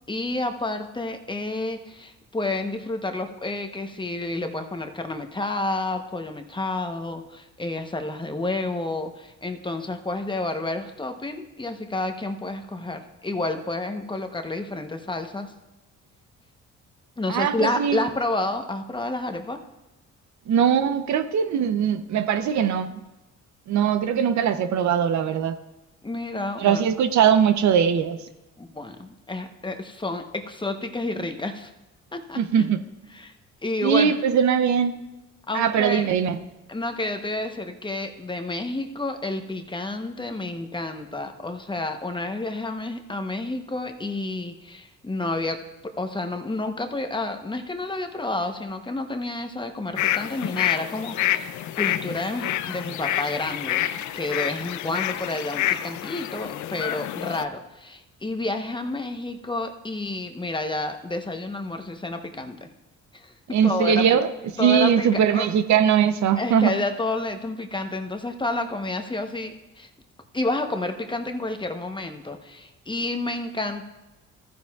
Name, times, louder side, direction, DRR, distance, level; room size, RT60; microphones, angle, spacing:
voice 1, 0.1-15.5 17.2-19.6 26.0-26.8 28.6-31.7 32.1-32.7 33.1-33.3 33.6-34.1 35.5-36.2 36.7-51.5 51.8-53.8 54.1-62.7 63.1-64.2 64.6-65.5 66.4-69.9 70.3-73.9, left 2 dB, 15° left, 6 dB, 0.9 m, -30 dB
voice 2, 17.3-18.0 20.5-23.0 23.7-25.6 26.6-28.2 32.4-32.8 33.8-35.0 35.5-36.4 63.5-64.3 64.6-66.7, right 8 dB, 70° right, 10 dB, 0.7 m, -21 dB
sound 1, 50.0-57.4, left 12 dB, 75° left, 0.5 m, -28 dB
15.0 x 9.8 x 2.4 m, 1.0 s
cardioid pair, 90°, 30 cm